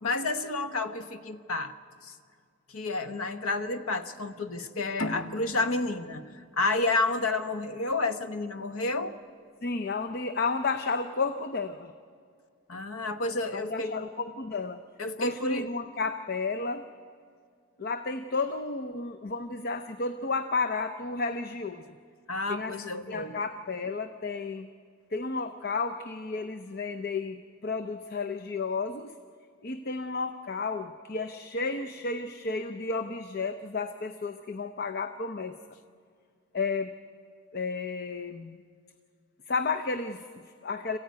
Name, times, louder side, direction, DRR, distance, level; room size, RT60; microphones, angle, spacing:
voice 1, 0.0-1.7 2.0-2.1 2.7-9.1 12.7-14.0 15.0-15.7 22.3-23.3, left 2 dB, 85° left, 9 dB, 1.1 m, -30 dB
sound 1, 5.0-8.2, left 1 dB, 70° left, 1.4 m, -39 dB
voice 2, 9.6-11.9 13.5-14.8 15.2-16.9 17.8-22.0 22.5-22.8 23.1-24.7 25.1-29.1 29.6-35.6 36.5-37.0 37.5-38.6 39.5-41.0, left 4 dB, 45° left, 9 dB, 0.6 m, -32 dB
26.5 x 15.0 x 9.4 m, 2.2 s
head